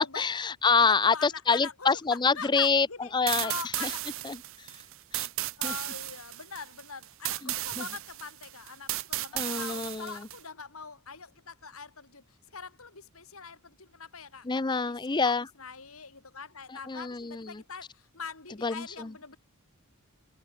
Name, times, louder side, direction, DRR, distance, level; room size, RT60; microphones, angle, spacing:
voice 1, 0.0-2.9 3.1-3.9 4.2-4.8 5.1-5.3 5.6-5.7 9.3-10.1 14.5-15.5 16.7-17.6 18.6-18.8, left 4 dB, 20° left, 0.5 m, -27 dB
voice 2, 0.8-3.1 3.4-4.1 5.6-19.4, left 5 dB, 70° left, 3.5 m, -43 dB
sound 1, 3.3-10.4, right 16 dB, 65° right, 0.6 m, -35 dB
head